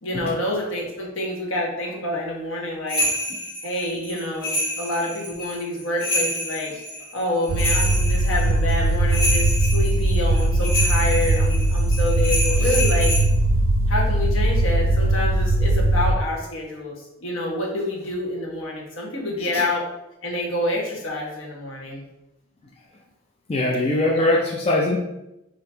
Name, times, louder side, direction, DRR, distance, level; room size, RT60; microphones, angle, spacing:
voice 1, 0.0-3.0 3.6-6.7 7.1-13.1 13.9-19.8 20.2-22.0 24.1-24.3, left 1 dB, 70° left, -2 dB, 1.1 m, -27 dB
sound 1, 2.9-13.2, left 1 dB, 50° left, 1.3 m, -27 dB
sound 2, 7.5-16.1, right 1 dB, 75° right, 0.4 m, -20 dB
voice 2, 23.5-25.0, left 2 dB, 30° left, -1 dB, 0.4 m, -21 dB
4.3 x 2.8 x 3.3 m, 0.90 s
head